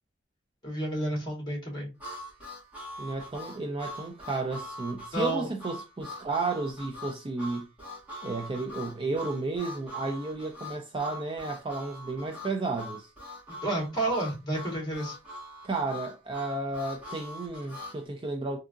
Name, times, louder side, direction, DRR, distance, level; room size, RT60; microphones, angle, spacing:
voice 1, 0.6-1.9 5.1-5.5 13.5-15.2, right 1 dB, 20° left, 1.6 m, -31 dB
Harmonica, 2.0-18.0, left 1 dB, 10° right, 1.4 m, -42 dB
voice 2, 3.0-7.7 8.2-13.1 15.6-18.6, right 3 dB, 25° right, 0.4 m, -32 dB
3.6 x 2.7 x 2.4 m
head